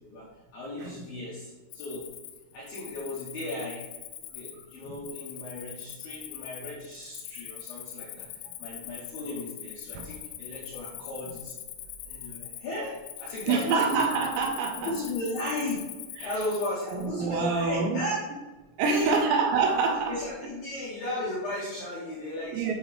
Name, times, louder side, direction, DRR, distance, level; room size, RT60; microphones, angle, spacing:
voice 1, 0.5-2.0 2.5-3.8 4.3-11.5 12.1-14.0 14.8-15.9 16.2-18.2 18.8-19.2 20.1-22.7, left 1 dB, 70° left, -7 dB, 2.2 m, -35 dB
Cricket, 1.7-17.1, left 11 dB, 90° left, 3.4 m, -43 dB
voice 2, 13.5-14.9 16.2-16.3 16.9-18.0 18.8-20.2 22.5-22.7, right 4 dB, 85° right, 2 dB, 2.5 m, -26 dB
9.7 x 4.3 x 3.4 m, 1.2 s
omnidirectional pair, 6.0 m